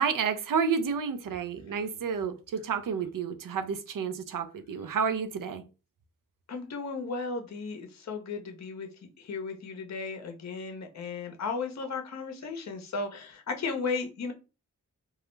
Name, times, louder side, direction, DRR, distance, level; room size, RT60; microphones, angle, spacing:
voice 1, 0.0-5.6, right 6 dB, 65° right, 0.5 m, -30 dB
voice 2, 6.5-8.9 9.2-14.3, left 4 dB, 50° left, 0.6 m, -35 dB
2.3 x 2.0 x 3.1 m
cardioid pair, 40°, 34 cm